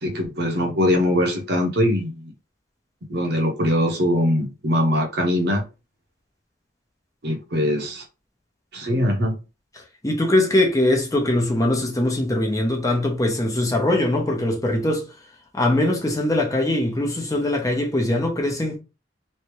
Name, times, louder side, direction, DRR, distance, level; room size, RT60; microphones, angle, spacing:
voice 1, 0.0-2.3 3.1-5.6 7.2-8.0 8.7-9.3, left 1 dB, 65° right, 1.0 m, -22 dB
voice 2, 10.0-15.1 15.5-18.8, left 1 dB, 20° left, 0.9 m, -21 dB
3.2 x 2.8 x 3.1 m
head